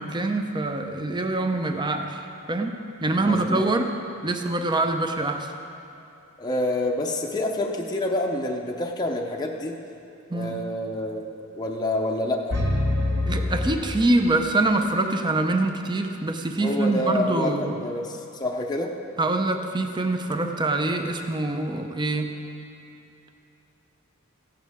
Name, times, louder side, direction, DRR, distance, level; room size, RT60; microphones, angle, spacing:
voice 1, 0.0-2.2 2.5-3.9 4.2-5.5 10.3-10.6 13.3-17.8 19.2-22.3, right 2 dB, 20° right, 5 dB, 0.7 m, -25 dB
voice 2, 3.2-3.7 6.4-9.7 10.3-12.6 16.6-18.9, left 1 dB, 20° left, 0 dB, 0.6 m, -28 dB
sound 1, 12.5-14.6, left 1 dB, 55° right, 1.4 m, -26 dB
15.5 x 10.5 x 3.6 m, 2.8 s
head